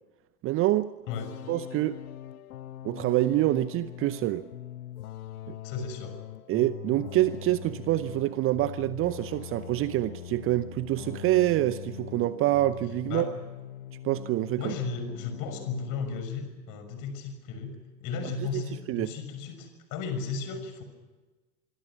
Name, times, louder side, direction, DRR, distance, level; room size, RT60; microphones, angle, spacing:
voice 1, 0.4-0.9 1.5-2.0 2.8-4.5 5.5-5.6 6.5-13.3 14.0-14.7 18.5-18.6 18.9-19.1, right 16 dB, 25° right, 0.7 m, -26 dB
sound 1, 1.1-14.8 15.1-16.3, left 12 dB, 60° left, 1.0 m, -42 dB
voice 2, 5.6-6.2 13.1-13.3 14.6-20.8, left 5 dB, 40° left, 6.3 m, -35 dB
25.5 x 24.5 x 6.1 m
figure-of-eight pair, 85°, 48 cm